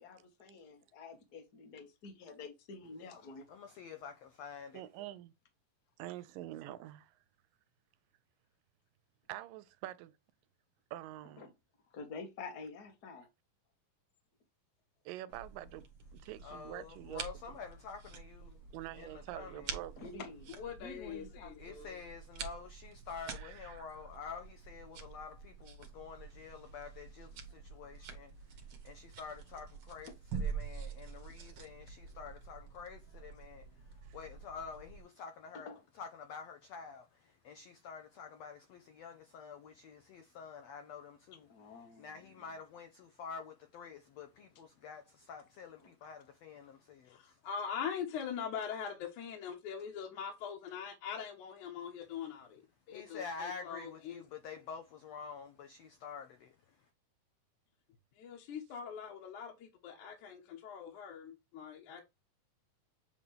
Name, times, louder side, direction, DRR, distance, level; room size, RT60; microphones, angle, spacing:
voice 1, 0.0-3.5 11.4-11.5 11.9-13.3 20.0-20.5 20.8-21.5 35.5-35.8 41.5-42.2, left 4 dB, 50° left, 1.2 m, -48 dB
voice 2, 3.5-4.8 16.4-18.6 18.9-19.8 21.6-35.7 35.9-47.4 52.9-56.9, left 5 dB, 85° left, 1.5 m, -48 dB
voice 3, 4.7-5.3 6.0-7.2 9.3-10.1 10.9-11.4 15.1-15.9 16.1-17.6 18.7-20.1 23.3-24.0 34.1-34.2, right 15 dB, 85° right, 2.2 m, -46 dB
sound 1, 15.3-35.0, right 6 dB, 55° right, 1.7 m, -47 dB
voice 4, 20.5-22.0 47.1-52.6 52.9-54.2 58.2-62.0, left 7 dB, 70° left, 2.5 m, -42 dB
8.2 x 3.6 x 3.3 m
omnidirectional pair, 3.9 m